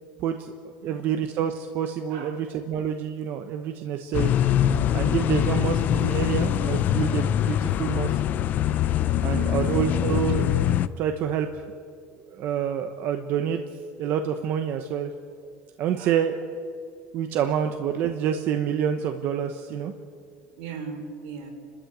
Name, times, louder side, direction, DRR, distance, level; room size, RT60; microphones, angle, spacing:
voice 1, 0.2-0.5 0.8-4.3 4.9-8.2 9.2-10.5 11.0-11.6 12.2-13.6 14.0-15.1 15.8-16.6 17.1-19.9, right 9 dB, 40° right, 6 dB, 1.0 m, -27 dB
voice 2, 0.8-1.2 2.1-2.4 5.4-5.8 9.3-9.7 15.9-16.3 20.6-21.5, right 5 dB, 75° right, 3 dB, 4.6 m, -39 dB
sound 1, 4.1-10.9, left 10 dB, 35° left, 0.6 m, -23 dB
30.0 x 13.0 x 8.1 m, 2.3 s
cardioid pair, 170°, 5 cm